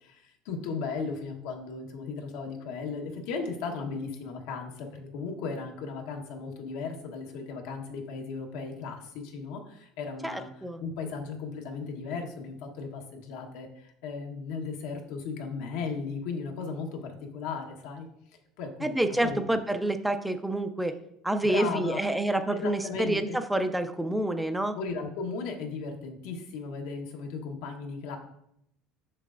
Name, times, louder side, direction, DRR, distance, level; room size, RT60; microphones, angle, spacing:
voice 1, 0.0-10.5 10.8-18.1 18.6-19.4 21.4-22.0 22.5-23.4 24.7-28.2, left 4 dB, 75° left, 3 dB, 1.2 m, -36 dB
voice 2, 10.2-10.8 18.8-20.9 21.2-24.7, right 1 dB, 5° right, 8 dB, 0.3 m, -28 dB
6.5 x 6.3 x 2.5 m, 0.75 s
cardioid pair, 150°, 0 cm